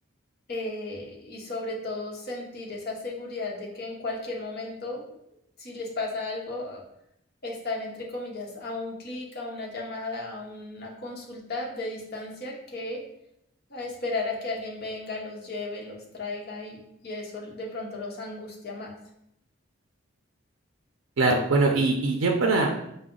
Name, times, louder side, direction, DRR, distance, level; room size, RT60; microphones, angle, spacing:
voice 1, 0.5-5.0 5.6-6.8 7.4-13.0 13.7-16.8 17.0-18.9, left 2 dB, 50° left, -1 dB, 0.9 m, -34 dB
voice 2, 21.2-22.8, right 3 dB, 80° right, 1 dB, 0.4 m, -22 dB
4.7 x 2.0 x 3.7 m, 0.77 s
head